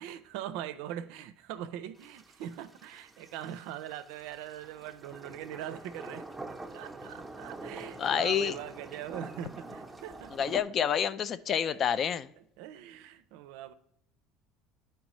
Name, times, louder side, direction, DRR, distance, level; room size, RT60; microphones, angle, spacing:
voice 1, 0.0-6.3 6.7-10.4 11.6-11.8 12.4-13.7, right 11 dB, 75° right, 0.4 m, -42 dB
sound 1, 1.9-10.6, right 2 dB, 5° right, 0.8 m, -46 dB
voice 2, 8.0-8.6 10.3-12.3, left 8 dB, 45° left, 0.3 m, -28 dB
10.5 x 4.4 x 3.0 m
supercardioid pair, 90°, 0 cm